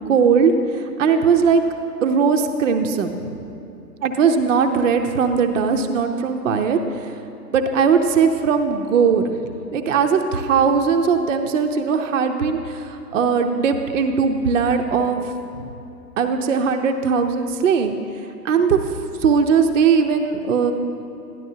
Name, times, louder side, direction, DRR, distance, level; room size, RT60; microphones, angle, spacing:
voice 1, 0.1-1.6 2.0-3.1 4.0-7.1 7.5-9.3 9.7-15.2 16.2-18.0 18.4-18.8 19.2-20.7, right 6 dB, 50° right, 5 dB, 0.6 m, -19 dB
12.5 x 11.0 x 2.7 m, 2.8 s
hypercardioid pair, 140°, 49 cm